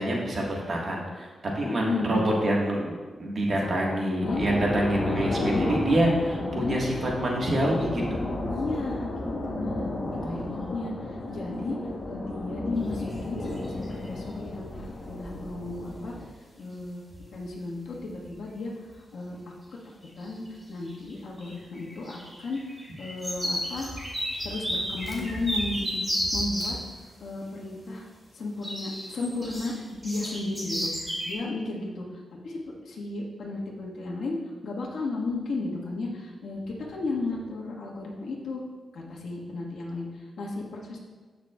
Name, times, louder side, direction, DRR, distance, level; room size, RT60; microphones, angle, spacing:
voice 1, 0.0-2.9 3.2-8.2 10.2-10.8, right 1 dB, 45° right, -2 dB, 1.7 m, -27 dB
voice 2, 1.6-2.2 3.6-4.4 5.3-5.7 6.4-6.8 8.5-9.9 10.2-11.8 12.0-14.7 15.0-16.1 16.6-17.0 17.3-18.7 19.1-19.4 20.2-26.0 26.3-26.8 27.2-28.0 28.3-32.1 32.4-32.6 32.8-34.4 34.6-38.6 38.9-41.0, left 3 dB, 75° left, -3 dB, 1.6 m, -34 dB
sound 1, 4.2-16.2, left 2 dB, 40° left, 1.2 m, -33 dB
sound 2, 12.9-13.2 13.4-14.1 16.0-16.1 16.8-16.9 17.1-17.5 17.8-18.3 18.9-19.0 20.0-20.5 20.8-26.8 28.6-31.3, equal, 5° right, 2.5 m, -32 dB
15.0 x 5.9 x 2.4 m, 1.4 s
wide cardioid pair, 135°, 0 cm